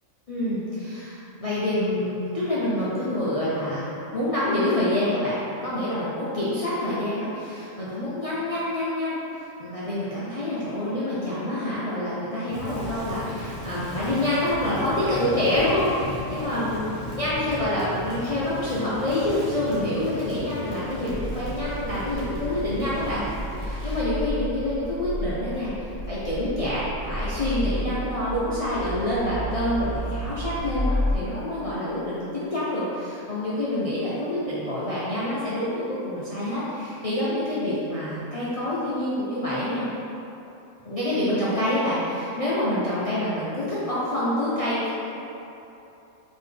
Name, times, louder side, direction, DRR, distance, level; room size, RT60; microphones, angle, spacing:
voice 1, 0.3-16.9 17.2-23.3 23.5-39.9 40.8-44.9, left 1 dB, 55° left, -10 dB, 0.4 m, -27 dB
Crackle, 12.4-24.0, left 2 dB, 60° right, 1.3 m, -36 dB
sound 1, 21.1-31.1, equal, 80° right, 1.2 m, -31 dB
4.0 x 3.0 x 3.3 m, 2.9 s
omnidirectional pair, 1.4 m